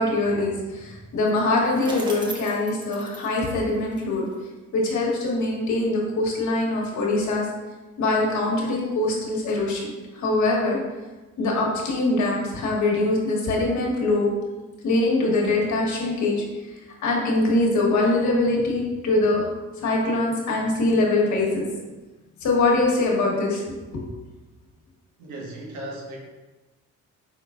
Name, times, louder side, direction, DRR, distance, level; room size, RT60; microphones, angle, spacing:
voice 1, 0.0-4.3 4.7-7.5 8.0-10.8 11.4-14.3 14.8-16.4 17.0-19.5 19.8-21.7 22.4-24.0, left 2 dB, 70° left, -3 dB, 1.3 m, -23 dB
Bicycle, 1.2-4.4, right 1 dB, 15° right, 0.9 m, -39 dB
voice 2, 25.2-26.2, right 1 dB, 85° right, -1 dB, 1.2 m, -36 dB
5.3 x 3.8 x 2.5 m, 1.2 s
cardioid pair, 90°, 30 cm